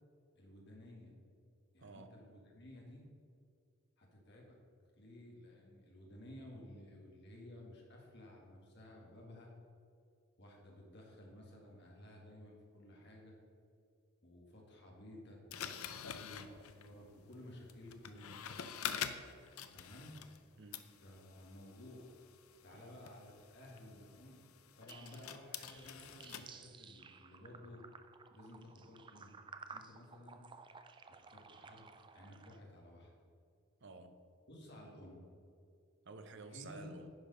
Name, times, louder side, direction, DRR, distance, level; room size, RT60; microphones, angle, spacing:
voice 1, 0.4-1.1 1.7-3.0 4.0-4.6 5.0-9.5 10.4-13.4 14.2-18.6 19.7-20.2 21.0-22.1 22.6-24.4 24.8-27.9 28.3-29.3 29.7-30.4 31.1-31.9 32.1-33.1 34.5-35.3 36.5-37.0, left 1 dB, 50° left, 2.0 m, -55 dB
voice 2, 1.8-2.2 20.6-20.9 22.7-23.0 33.8-34.3 36.0-37.1, right 3 dB, 55° right, 0.7 m, -52 dB
sound 1, 15.5-20.4 20.7-26.5, left 8 dB, 75° left, 0.6 m, -47 dB
sound 2, 24.9-32.6, right 5 dB, 20° right, 0.3 m, -56 dB
10.5 x 5.1 x 5.5 m
head